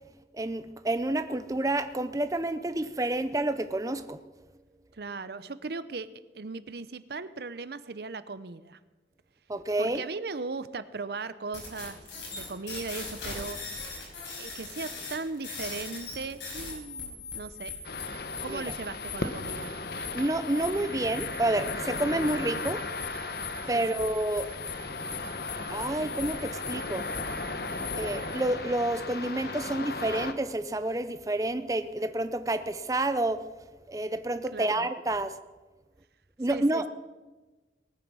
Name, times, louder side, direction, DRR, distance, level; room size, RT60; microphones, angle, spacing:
voice 1, 0.3-4.2 9.5-10.0 18.5-18.6 20.1-22.8 23.6-24.5 25.7-27.1 27.5-33.4 33.9-35.4 36.4-36.9, right 1 dB, 20° right, 11 dB, 0.5 m, -29 dB
voice 2, 4.9-6.1 6.3-8.8 9.8-12.0 12.3-14.1 14.4-17.7 18.4-19.7 23.7-23.9 34.5-34.9 36.5-36.9, right 4 dB, 60° right, 15 dB, 0.6 m, -38 dB
sound 1, 11.5-28.4, left 4 dB, 85° left, 5.7 m, -40 dB
sound 2, 17.8-30.3, left 3 dB, 55° left, 1.0 m, -36 dB
19.5 x 9.3 x 6.2 m, 1.2 s
head